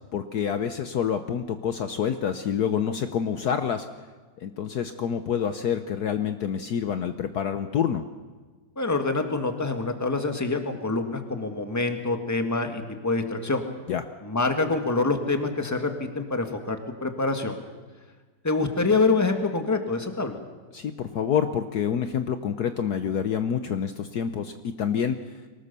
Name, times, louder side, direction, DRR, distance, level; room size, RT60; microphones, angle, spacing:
voice 1, 0.1-3.9 4.4-8.0 13.9-14.0 20.7-25.4, left 8 dB, 65° left, 9 dB, 1.3 m, -27 dB
voice 2, 8.8-13.6 14.2-17.6 18.4-20.4, left 3 dB, 10° left, 5 dB, 1.6 m, -26 dB
23.5 x 19.0 x 6.9 m, 1.4 s
omnidirectional pair, 2.0 m